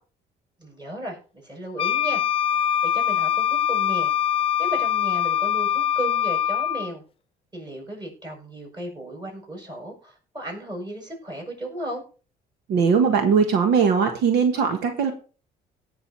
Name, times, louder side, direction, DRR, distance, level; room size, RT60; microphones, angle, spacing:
voice 1, 0.6-2.2 2.6-4.1 4.6-7.0 7.5-12.0, right 1 dB, 25° right, 0 dB, 7.1 m, -35 dB
Wind instrument woodwind instrument, 1.8-6.9, left 10 dB, 35° left, 0.4 m, -23 dB
voice 2, 12.7-15.1, right 6 dB, 75° right, 6 dB, 1.5 m, -20 dB
17.5 x 6.3 x 4.2 m, 0.37 s
cardioid pair, 110°, 17 cm